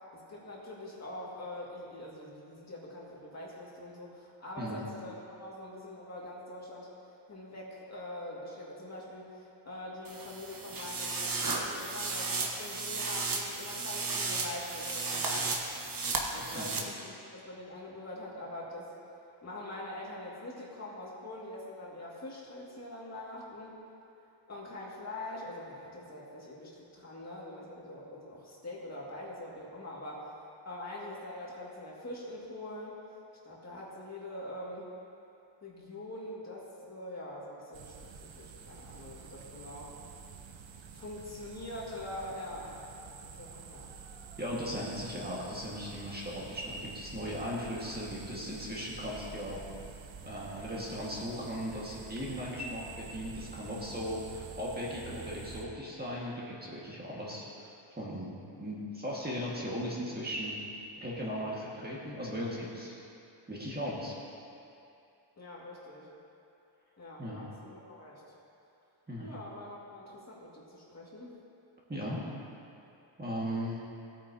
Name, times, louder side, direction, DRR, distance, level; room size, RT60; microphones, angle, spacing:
voice 1, 0.1-6.9 7.3-18.9 19.3-23.8 24.5-33.0 33.4-34.9 35.6-39.9 40.9-43.9 65.4-66.1 67.0-68.2 69.2-71.4, left 1 dB, 30° left, -5 dB, 2.1 m, -44 dB
sound 1, 10.0-16.8, right 3 dB, 45° right, 1.2 m, -34 dB
sound 2, 37.7-55.6, right 5 dB, 65° right, 1.0 m, -48 dB
voice 2, 44.4-49.6 50.2-57.7 58.0-60.5 61.0-63.0 63.5-64.2 67.2-67.4 69.1-69.3 71.9-72.2 73.2-73.8, equal, 20° right, -6 dB, 1.8 m, -37 dB
17.0 x 9.0 x 2.8 m, 2.6 s
wide cardioid pair, 130°, 48 cm